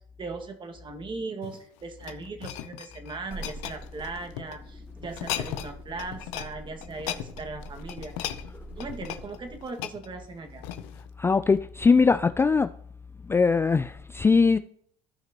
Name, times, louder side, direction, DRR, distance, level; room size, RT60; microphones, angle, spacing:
voice 1, 0.2-8.4 8.8-10.7, right 3 dB, 35° right, 1.9 m, -38 dB
sound 1, 1.3-4.6 5.0-5.7 6.0-6.5 6.8-11.1 11.6-11.8, left 13 dB, 85° left, 0.7 m, -37 dB
sound 2, 3.2-9.7, right 2 dB, 10° right, 1.8 m, -45 dB
voice 2, 11.2-12.7 13.3-14.6, left 4 dB, 15° left, 0.3 m, -21 dB
15.5 x 5.8 x 3.0 m
supercardioid pair, 75°, 14 cm